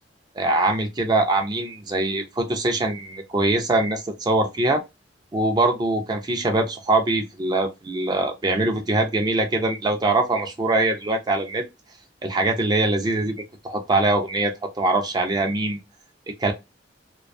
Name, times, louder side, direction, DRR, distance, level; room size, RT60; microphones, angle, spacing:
voice 1, 0.4-4.8 5.3-11.6 12.2-13.4 13.6-14.5 14.8-15.8 16.4-16.5, right 2 dB, 25° right, 0.4 m, -22 dB
2.4 x 2.3 x 2.4 m
head